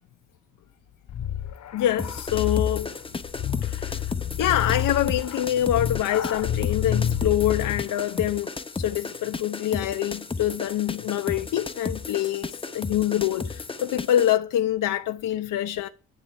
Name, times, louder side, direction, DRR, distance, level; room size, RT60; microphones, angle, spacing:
sound 1, 1.1-8.0, left 9 dB, 55° left, 1.1 m, -29 dB
voice 1, 1.7-2.9 3.6-4.1 4.4-15.9, left 12 dB, 75° left, 0.8 m, -25 dB
sound 2, 2.0-14.4, left 4 dB, 15° left, 0.7 m, -34 dB
11.0 x 7.2 x 8.2 m
cardioid pair, 120°, 32 cm